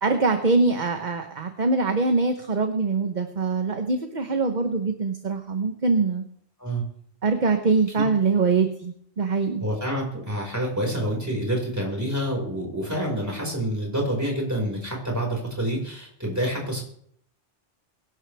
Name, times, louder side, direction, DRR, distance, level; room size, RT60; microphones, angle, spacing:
voice 1, 0.0-6.2 7.2-9.6, right 4 dB, 45° right, 6 dB, 1.1 m, -23 dB
voice 2, 9.6-16.8, right 1 dB, 15° right, -1 dB, 5.2 m, -27 dB
22.5 x 12.0 x 3.5 m, 0.66 s
omnidirectional pair, 1.1 m